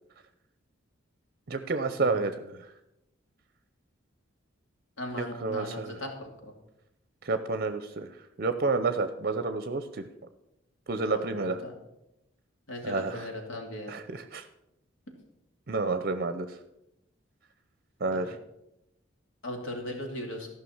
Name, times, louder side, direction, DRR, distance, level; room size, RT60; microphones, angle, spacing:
voice 1, 1.5-2.7 5.2-6.0 7.2-10.1 10.9-11.6 12.8-13.3 13.9-14.5 15.7-16.6 18.0-18.4, right 3 dB, 50° right, 10 dB, 0.6 m, -30 dB
voice 2, 5.0-6.5 11.1-11.7 12.7-14.0 18.1-18.3 19.4-20.5, left 1 dB, 75° left, 2 dB, 2.7 m, -38 dB
14.5 x 5.8 x 7.2 m, 0.87 s
head